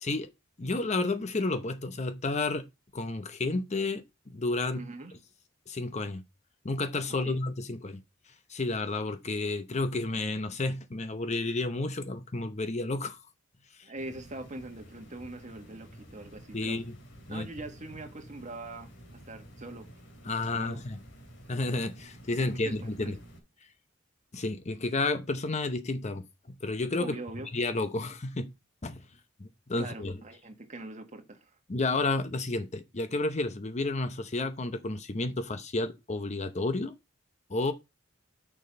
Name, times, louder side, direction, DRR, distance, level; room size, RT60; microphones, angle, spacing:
voice 1, 0.6-2.7 2.9-4.9 5.7-6.2 6.6-8.0 8.5-13.2 13.8-13.9 16.5-17.0 17.3-17.5 20.2-21.0 21.5-23.2 24.3-27.2 27.5-28.5 28.8-29.1 29.4-30.2 31.7-36.9 37.5-37.7, left 2 dB, 35° left, 0.7 m, -31 dB
voice 2, 4.7-5.1 7.2-7.4 13.8-16.8 17.3-19.9 20.5-20.8 22.4-23.1 27.0-27.5 29.8-31.5, right 2 dB, 40° right, 1.6 m, -42 dB
sound 1, 14.0-23.4, equal, 65° left, 2.6 m, -51 dB
6.8 x 5.6 x 5.2 m
head